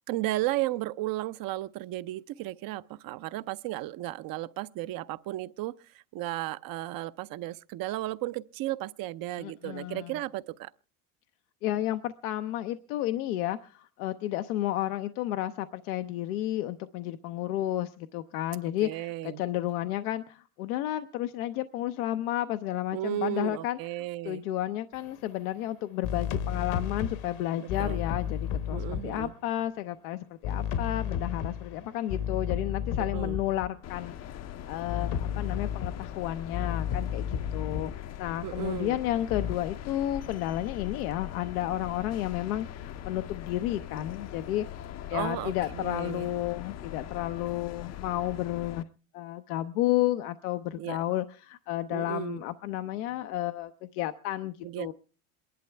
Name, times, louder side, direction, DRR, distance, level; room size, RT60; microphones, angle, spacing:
voice 1, 0.1-10.7 18.8-19.4 22.9-24.4 27.6-28.0 28.7-29.3 33.0-33.4 38.4-39.0 45.1-46.3 50.8-51.0 51.9-52.4 54.6-54.9, right 16 dB, 55° right, 0.7 m, -34 dB
voice 2, 9.4-10.2 11.6-44.7 45.1-48.9 49.1-54.9, left 13 dB, 85° left, 0.8 m, -32 dB
sound 1, 25.0-25.2 26.0-29.5 30.4-33.7 34.9-38.1 39.3-39.6, left 8 dB, 65° left, 1.2 m, -33 dB
sound 2, 33.8-48.8, left 11 dB, 35° left, 0.6 m, -41 dB
27.5 x 11.5 x 3.3 m
supercardioid pair, 95°, 43 cm